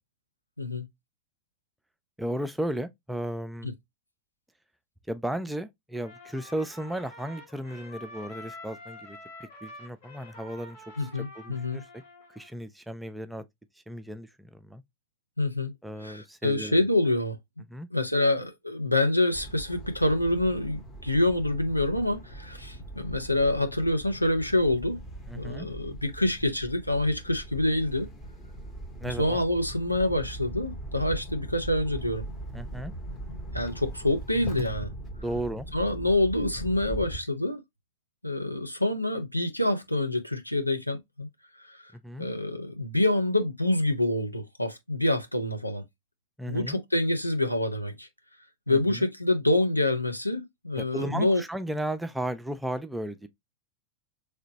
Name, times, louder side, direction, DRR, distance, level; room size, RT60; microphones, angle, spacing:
voice 1, 2.2-3.7 5.1-12.0 12.3-13.4 13.9-14.8 15.8-16.8 17.7-17.9 25.3-25.7 29.0-29.4 32.5-32.9 35.2-35.7 42.0-42.3 46.4-46.8 48.7-49.1 50.8-53.3, right 1 dB, 5° right, 0.4 m, -35 dB
Trumpet, 6.0-12.5, left 1 dB, 50° left, 1.4 m, -47 dB
voice 2, 11.0-11.8 15.4-15.7 16.0-17.4 17.9-25.0 25.3-28.1 29.0-32.2 33.5-34.9 35.7-37.6 38.2-41.3 41.6-41.9 42.2-45.8 46.5-48.1 48.7-51.4, left 1 dB, 90° left, 0.7 m, -26 dB
sound 1, 19.3-37.2, right 1 dB, 20° left, 0.8 m, -40 dB
3.3 x 2.9 x 2.7 m
figure-of-eight pair, 90°, 0 cm